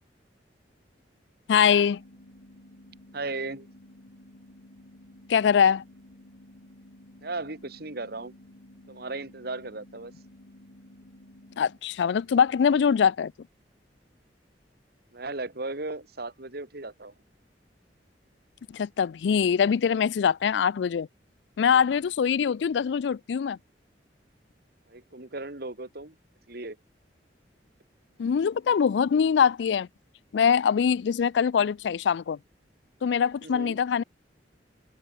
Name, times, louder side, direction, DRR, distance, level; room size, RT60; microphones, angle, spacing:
voice 1, 1.5-2.0 5.3-5.8 11.6-13.3 18.7-21.1 21.6-23.6 28.2-29.9 30.3-32.4 33.0-34.0, left 7 dB, 75° left, 0.4 m, -23 dB
sound 1, 1.8-11.8, left 1 dB, 90° left, 2.5 m, -52 dB
voice 2, 3.1-3.7 7.2-8.3 8.9-10.1 15.1-17.1 24.9-26.2 26.5-26.8 33.4-33.8, right 2 dB, 60° right, 2.5 m, -36 dB
head